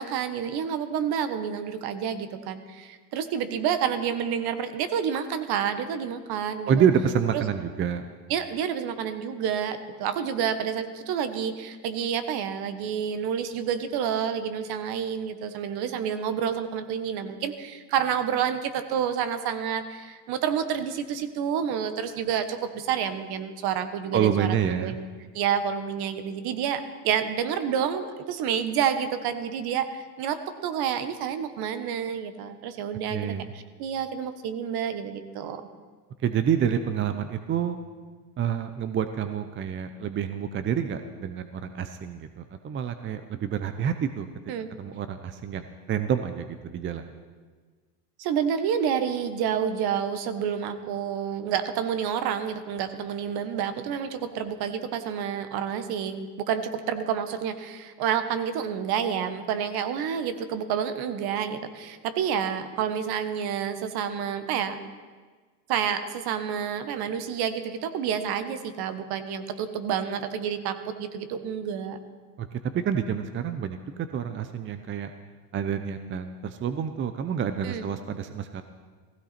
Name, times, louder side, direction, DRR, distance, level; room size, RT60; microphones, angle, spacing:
voice 1, 0.0-6.8 7.3-7.4 8.3-25.0 25.3-35.6 44.5-44.7 48.2-64.8 65.7-72.0 77.6-77.9, right 8 dB, 50° right, 10 dB, 1.4 m, -29 dB
voice 2, 6.7-8.1 24.1-25.0 33.1-33.5 36.2-37.8 38.4-44.3 44.8-47.1 72.4-75.1 75.5-78.6, right 8 dB, 25° right, 9 dB, 0.7 m, -28 dB
15.5 x 15.5 x 4.3 m, 1.5 s
supercardioid pair, 105°, 49 cm